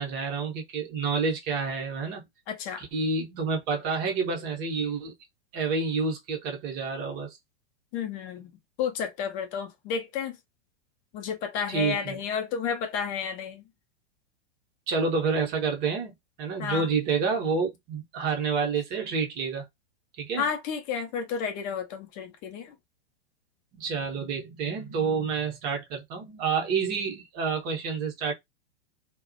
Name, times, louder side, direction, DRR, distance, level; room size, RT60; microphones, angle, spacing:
voice 1, 0.0-2.2 2.8-5.1 5.5-7.4 11.7-12.2 14.9-19.6 20.2-20.5 23.7-28.3, right 5 dB, 30° right, 0.8 m, -29 dB
voice 2, 2.5-2.8 7.9-8.5 8.8-10.4 11.1-13.6 16.6-16.9 20.4-22.7, left 7 dB, 25° left, 0.5 m, -31 dB
2.4 x 2.1 x 2.5 m
figure-of-eight pair, 100°, 34 cm